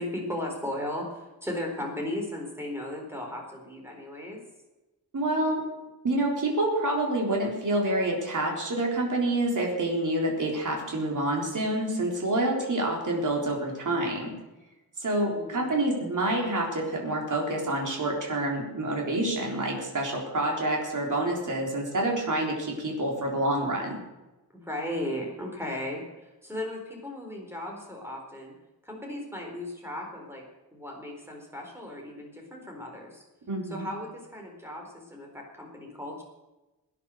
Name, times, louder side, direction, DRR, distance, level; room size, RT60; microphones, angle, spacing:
voice 1, 0.0-4.4 15.3-15.7 24.5-28.5 28.8-30.4 30.7-33.2 33.7-36.2, left 1 dB, 5° right, 0 dB, 4.1 m, -36 dB
voice 2, 5.1-5.6 6.0-14.3 15.0-24.0 33.5-33.9, right 1 dB, 55° right, -1 dB, 3.9 m, -27 dB
18.0 x 9.9 x 6.4 m, 1.0 s
wide cardioid pair, 160°, 37 cm